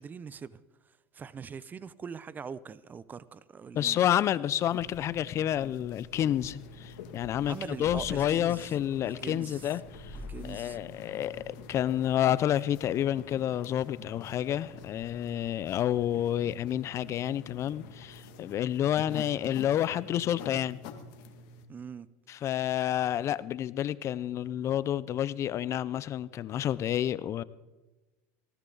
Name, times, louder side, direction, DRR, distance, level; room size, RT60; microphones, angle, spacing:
voice 1, 0.0-4.0 7.4-8.7 9.0-9.7 10.3-10.8 21.7-22.1, right 6 dB, 20° right, 0.6 m, -42 dB
voice 2, 3.7-10.2 10.4-20.8 22.3-27.4, left 11 dB, 35° left, 0.5 m, -29 dB
sound 1, 4.6-21.6, left 3 dB, 55° left, 2.0 m, -48 dB
Meow, 4.8-16.1, left 2 dB, 10° left, 4.7 m, -52 dB
sound 2, 6.1-19.5, left 10 dB, 75° left, 1.6 m, -53 dB
19.0 x 16.5 x 4.0 m
supercardioid pair, 110°, 8 cm